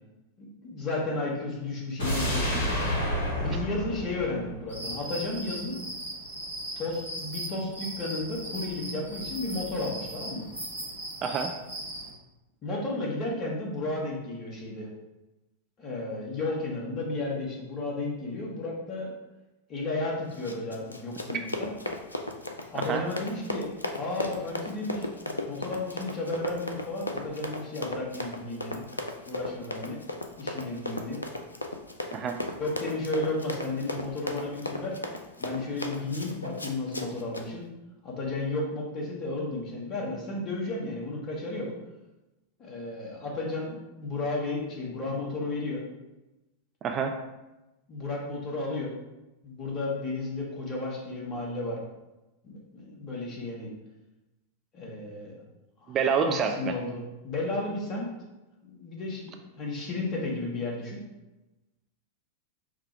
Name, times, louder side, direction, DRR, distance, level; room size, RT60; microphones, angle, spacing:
voice 1, 0.4-2.6 3.3-5.8 6.7-10.5 12.6-14.9 15.8-19.1 19.7-21.7 22.7-28.8 29.2-30.0 30.4-31.2 32.6-35.0 35.4-37.7 38.0-41.7 42.6-45.8 47.9-48.9 49.4-51.8 52.4-53.7 54.7-55.3 55.8-56.0 56.2-58.1 58.6-61.0, left 2 dB, 35° left, -2 dB, 1.3 m, -33 dB
sound 1, 2.0-5.1 5.4-5.5, equal, 60° left, 1.6 m, -29 dB
sound 2, 4.7-12.1, right 1 dB, 80° right, 1.0 m, -38 dB
voice 2, 11.2-11.5 21.3-21.4 22.7-23.0 32.1-32.4 46.8-47.2 55.9-56.8, right 6 dB, 30° right, 5 dB, 0.3 m, -27 dB
Run, 20.3-37.5, left 2 dB, 80° left, 0.4 m, -36 dB
4.9 x 2.3 x 4.5 m, 1.0 s
figure-of-eight pair, 90°, 0 cm